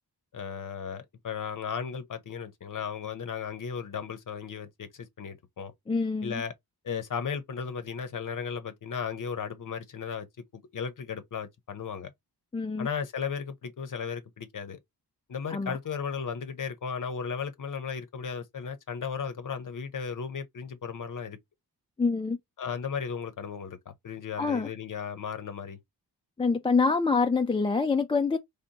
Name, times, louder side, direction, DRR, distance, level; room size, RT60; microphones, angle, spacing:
voice 1, 0.3-5.7 6.2-6.5 6.8-10.3 10.5-12.1 12.8-14.8 15.3-21.4 22.6-25.8, left 6 dB, 55° left, 0.7 m, -35 dB
voice 2, 5.9-6.4 12.5-12.9 15.5-15.8 22.0-22.4 24.4-24.7 26.4-28.4, left 4 dB, 15° left, 0.3 m, -26 dB
3.8 x 3.4 x 2.8 m
wide cardioid pair, 100°, 39 cm